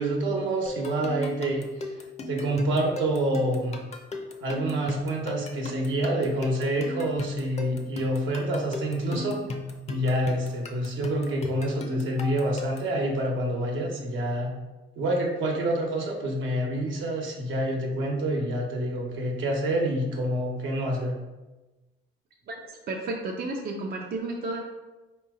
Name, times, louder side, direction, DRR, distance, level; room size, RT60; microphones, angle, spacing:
voice 1, 0.0-1.9 2.3-3.8 4.4-9.4 9.9-14.5 15.0-21.2, right 1 dB, 75° right, 0 dB, 1.0 m, -27 dB
sound 1, 0.7-13.0, left 2 dB, 35° left, 0.6 m, -36 dB
voice 2, 22.5-24.6, right 2 dB, 50° right, 0 dB, 0.6 m, -32 dB
4.6 x 3.0 x 3.6 m, 1.1 s
cardioid pair, 90°, 20 cm